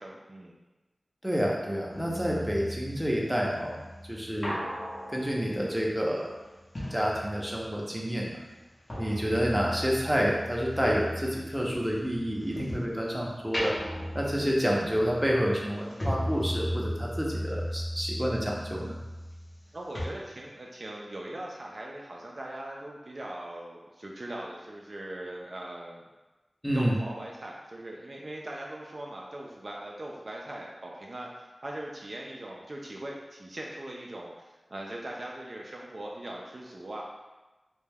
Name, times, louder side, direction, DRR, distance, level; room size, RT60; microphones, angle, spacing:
voice 1, 0.0-0.5 9.0-9.3 19.7-26.0 26.7-37.0, right 1 dB, 55° right, -2 dB, 0.3 m, -40 dB
voice 2, 1.2-3.7 4.1-4.6 5.1-6.3 6.9-8.4 8.9-13.7 14.1-19.0 26.6-26.9, equal, 10° right, -3 dB, 0.6 m, -29 dB
sound 1, 1.9-7.9 8.2-13.0 13.4-19.7 20.0-20.1, equal, 50° left, 0.7 m, -37 dB
2.2 x 2.1 x 3.2 m, 1.1 s
wide cardioid pair, 45°, 0 cm